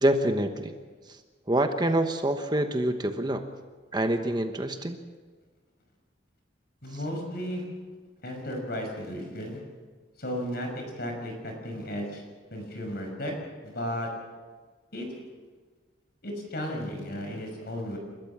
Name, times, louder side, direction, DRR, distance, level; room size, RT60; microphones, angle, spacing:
voice 1, 0.0-0.8 1.1-1.2 1.5-3.4 3.9-5.0 6.9-7.0, right 1 dB, 25° right, 7 dB, 1.1 m, -26 dB
voice 2, 6.8-7.6 8.2-9.6 10.2-12.2 12.5-13.3 13.6-14.1 14.9-15.1 16.2-18.0, equal, 55° left, 2 dB, 6.0 m, -34 dB
29.5 x 13.5 x 7.4 m, 1.4 s
head